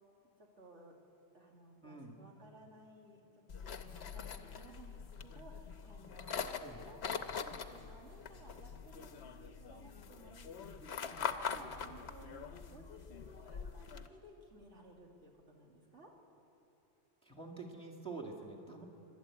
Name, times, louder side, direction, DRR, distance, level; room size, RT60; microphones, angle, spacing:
voice 1, 0.4-1.0 1.3-6.4 6.8-16.1 18.7-18.8, right 1 dB, 85° right, -1 dB, 2.8 m, -58 dB
voice 2, 1.8-2.2 6.6-6.9 17.2-18.8, right 3 dB, 5° left, -2 dB, 2.0 m, -47 dB
sound 1, 3.5-14.1, left 6 dB, 70° left, 1.1 m, -43 dB
27.0 x 12.0 x 8.4 m, 3.0 s
omnidirectional pair, 1.2 m